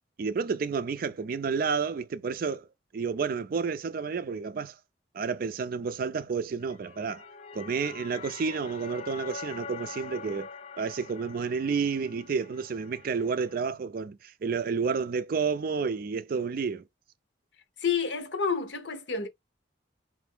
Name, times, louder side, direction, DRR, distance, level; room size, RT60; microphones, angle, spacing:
voice 1, 0.2-2.7 2.9-4.7 5.1-7.2 7.5-10.5 10.8-16.8, right 5 dB, 50° right, 0.4 m, -30 dB
sound 1, 6.6-13.6, left 5 dB, 40° left, 0.4 m, -44 dB
voice 2, 17.8-19.3, left 6 dB, 70° left, 0.8 m, -29 dB
3.3 x 2.6 x 3.5 m
head